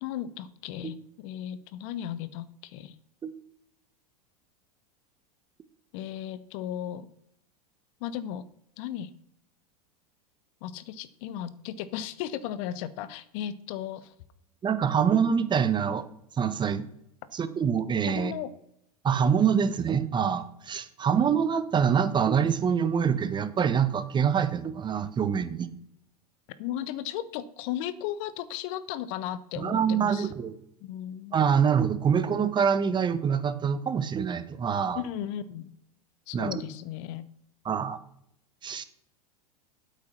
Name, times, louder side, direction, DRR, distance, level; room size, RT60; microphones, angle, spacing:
voice 1, 0.0-2.9 5.9-7.1 8.0-8.4 8.8-9.1 10.6-14.1 18.1-18.5 26.6-30.3 30.8-31.4 34.9-35.7 36.3-37.2, left 11 dB, 55° left, 16 dB, 0.9 m, -35 dB
voice 2, 14.6-16.0 16.4-16.9 17.3-18.3 19.0-25.7 29.6-30.6 31.3-35.0 36.3-36.6 37.6-38.0 38.6-38.8, right 7 dB, 20° right, 13 dB, 0.9 m, -25 dB
8.7 x 8.4 x 5.7 m, 0.74 s
hypercardioid pair, 95°, 20 cm